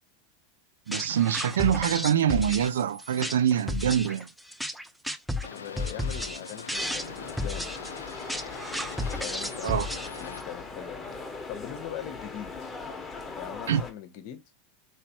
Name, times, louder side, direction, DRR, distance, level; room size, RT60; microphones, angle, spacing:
sound 1, 0.9-10.4, left 1 dB, ahead, 0.4 m, -33 dB
voice 1, 0.9-4.3 9.6-9.9 13.7-13.8, right 9 dB, 75° right, 0.3 m, -25 dB
Boat Water vehicle, 5.4-10.4, left 6 dB, 85° left, 0.3 m, -42 dB
voice 2, 5.5-7.7 9.1-11.1 11.5-12.7 13.3-14.4, left 10 dB, 55° left, 0.7 m, -41 dB
sound 2, 6.7-13.9, left 3 dB, 15° left, 1.0 m, -40 dB
3.1 x 3.1 x 2.8 m
hypercardioid pair, 85°, 0 cm